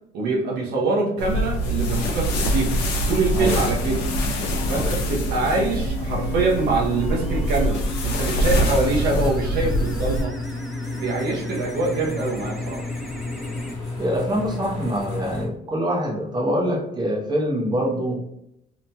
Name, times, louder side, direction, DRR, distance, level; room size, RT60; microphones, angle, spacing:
voice 1, 0.1-2.7 3.1-4.0 4.7-10.3 10.9-12.8, right 3 dB, 75° right, -2 dB, 0.7 m, -24 dB
sound 1, 1.2-10.2, equal, 90° left, 0.5 m, -24 dB
sound 2, 3.7-13.7, equal, ahead, 0.3 m, -36 dB
sound 3, 7.3-15.5, left 3 dB, 20° left, 1.4 m, -33 dB
voice 2, 14.0-18.2, equal, 25° right, -2 dB, 0.8 m, -25 dB
2.9 x 2.7 x 2.2 m, 0.79 s
cardioid pair, 110°, 17 cm